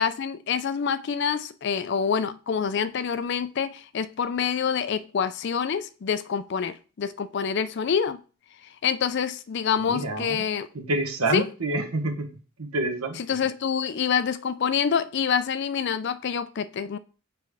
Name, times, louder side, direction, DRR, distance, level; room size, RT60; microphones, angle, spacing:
voice 1, 0.0-8.2 8.8-10.7 11.3-11.5 13.2-17.0, left 7 dB, 50° left, 0.3 m, -26 dB
voice 2, 9.9-10.4 10.7-12.3 12.6-13.2, right 2 dB, 80° right, 1.1 m, -27 dB
6.9 x 3.1 x 4.8 m
head